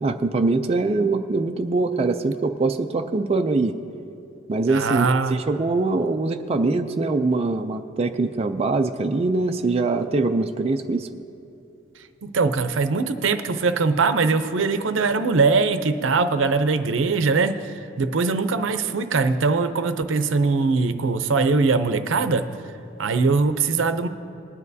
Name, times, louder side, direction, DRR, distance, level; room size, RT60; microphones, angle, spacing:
voice 1, 0.0-3.7 4.5-11.1, right 3 dB, 30° right, 5 dB, 0.4 m, -23 dB
voice 2, 4.7-5.4 12.2-22.4 23.0-24.1, right 4 dB, 80° right, 10 dB, 0.6 m, -21 dB
20.0 x 9.8 x 2.7 m, 2.8 s
head